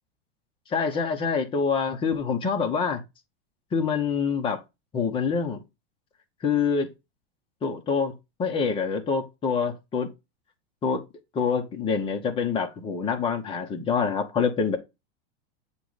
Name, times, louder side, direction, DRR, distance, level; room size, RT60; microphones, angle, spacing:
voice 1, 0.7-3.0 3.7-4.6 4.9-5.6 6.4-6.9 7.6-8.1 8.4-10.1 10.8-11.0 11.3-14.8, left 5 dB, 15° left, 0.9 m, -26 dB
7.6 x 3.2 x 3.9 m
supercardioid pair, 160°, 31 cm